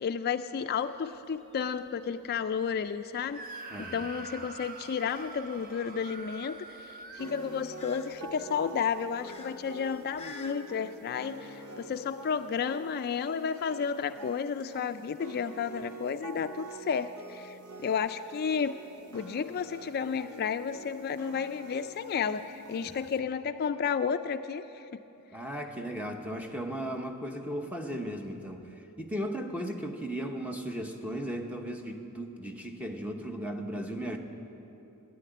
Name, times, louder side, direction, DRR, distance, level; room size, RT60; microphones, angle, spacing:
voice 1, 0.0-3.4 3.9-18.8 19.1-24.8, left 6 dB, 45° left, 10 dB, 0.3 m, -32 dB
sound 1, 0.8-10.5, left 3 dB, 30° left, 0.8 m, -53 dB
Screaming, 3.3-8.2, right 2 dB, 40° right, 0.8 m, -45 dB
voice 2, 3.7-4.1 22.8-23.0 25.3-34.2, equal, 5° right, 3 dB, 0.9 m, -36 dB
sound 2, 7.2-23.2, right 2 dB, 75° right, 1.0 m, -46 dB
12.5 x 10.0 x 9.4 m, 3.0 s
head